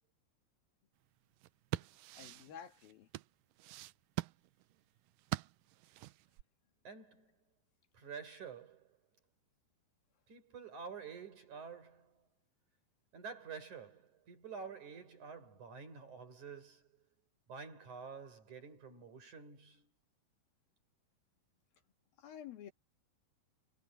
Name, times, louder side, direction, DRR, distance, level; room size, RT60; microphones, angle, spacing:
sound 1, 1.3-6.4, right 18 dB, 90° right, 1.9 m, -43 dB
voice 1, 2.2-3.1 22.2-22.7, left 9 dB, 70° left, 3.6 m, -50 dB
voice 2, 6.8-7.3 7.9-9.0 10.3-12.2 13.1-17.0 17.5-19.9, right 5 dB, 50° right, 6.5 m, -49 dB
omnidirectional pair, 4.6 m